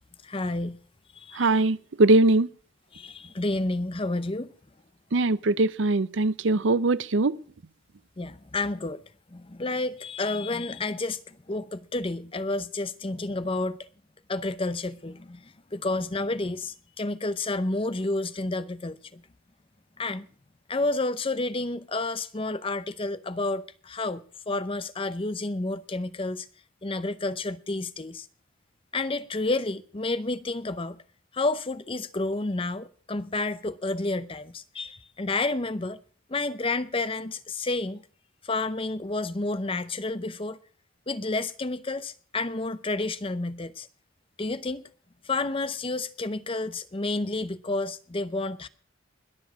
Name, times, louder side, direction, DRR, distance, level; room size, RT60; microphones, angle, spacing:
voice 1, 0.2-0.8 1.2-1.5 2.9-4.5 8.2-9.0 9.3-13.8 14.3-15.4 15.7-19.2 20.0-20.3 20.7-26.5 26.8-28.3 28.9-31.0 31.3-36.0 36.3-38.0 38.4-40.6 41.1-43.9 44.4-44.8 45.3-48.7, left 2 dB, 25° left, 0.7 m, -30 dB
voice 2, 1.4-2.5 5.1-7.4, right 2 dB, 65° right, 0.6 m, -21 dB
21.0 x 7.2 x 6.1 m
head